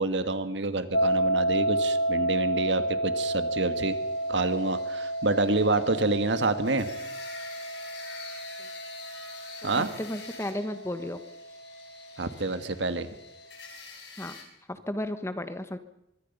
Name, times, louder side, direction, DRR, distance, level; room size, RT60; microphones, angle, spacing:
voice 1, 0.0-4.0 4.3-6.9 9.6-9.9 12.2-13.1, right 3 dB, 80° right, 9 dB, 1.8 m, -27 dB
sound 1, 0.9-11.9, right 1 dB, 55° left, 1.2 m, -31 dB
sound 2, 3.5-14.4, left 5 dB, 70° left, 5.2 m, -47 dB
voice 2, 9.6-11.2 14.2-14.4 14.7-15.8, left 1 dB, 15° left, 10 dB, 1.2 m, -34 dB
24.0 x 23.5 x 5.6 m, 0.82 s
head